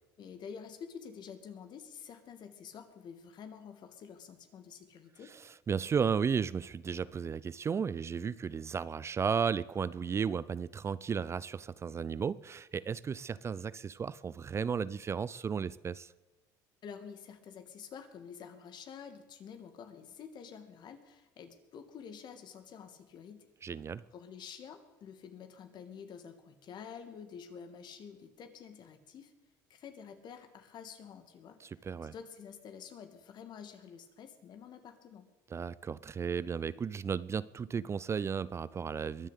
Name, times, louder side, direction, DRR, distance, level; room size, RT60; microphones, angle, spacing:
voice 1, 0.2-5.3 16.8-23.5 24.1-29.3 29.7-31.6 32.1-35.2, left 7 dB, 55° left, 2.4 m, -49 dB
voice 2, 5.7-16.1 23.6-24.0 31.6-32.1 35.5-39.3, right 6 dB, 30° right, 0.5 m, -34 dB
22.5 x 7.5 x 8.4 m
supercardioid pair, 90°, 9 cm